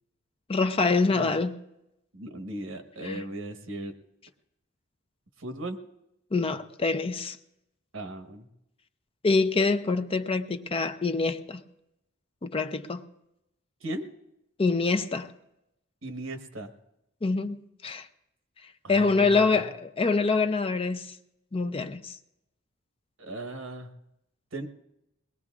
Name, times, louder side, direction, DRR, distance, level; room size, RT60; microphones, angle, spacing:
voice 1, 0.5-1.6 3.0-3.2 6.3-7.4 9.2-11.6 12.4-13.1 14.6-15.3 17.2-18.1 18.9-21.1 21.5-22.1, left 4 dB, 30° left, 0.5 m, -25 dB
voice 2, 1.1-1.4 2.1-4.0 5.4-5.8 7.9-8.5 13.8-14.1 16.0-16.7 18.8-19.7 23.2-23.9 24.5-24.7, right 1 dB, 80° right, 1.2 m, -37 dB
22.0 x 19.0 x 2.4 m
head